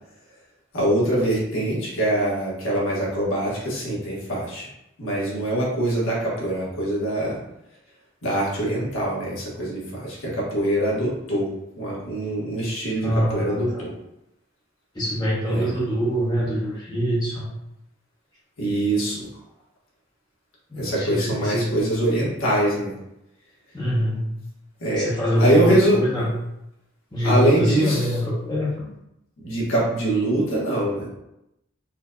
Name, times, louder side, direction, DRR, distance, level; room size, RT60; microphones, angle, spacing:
voice 1, 0.7-4.7 5.0-7.4 8.2-13.9 15.5-15.7 18.6-19.3 20.8-22.9 24.8-25.1 25.4-26.0 27.2-28.1 29.4-31.1, right 1 dB, 75° left, -5 dB, 1.3 m, -23 dB
voice 2, 13.0-13.8 14.9-17.5 20.7-21.7 23.7-24.3 25.0-26.3 27.1-28.9, equal, 20° left, -7 dB, 0.8 m, -24 dB
4.4 x 2.6 x 2.3 m, 0.85 s
head